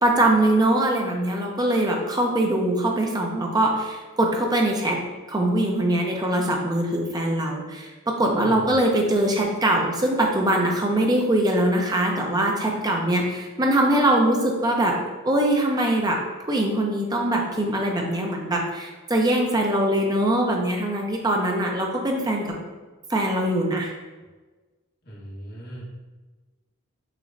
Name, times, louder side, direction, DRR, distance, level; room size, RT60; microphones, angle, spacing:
voice 1, 0.0-5.0 5.3-15.0 15.3-22.5 23.1-23.9, right 1 dB, 20° right, 1 dB, 0.6 m, -22 dB
voice 2, 25.1-25.9, right 1 dB, 45° left, -6 dB, 1.4 m, -38 dB
6.3 x 3.0 x 2.6 m, 1.3 s
head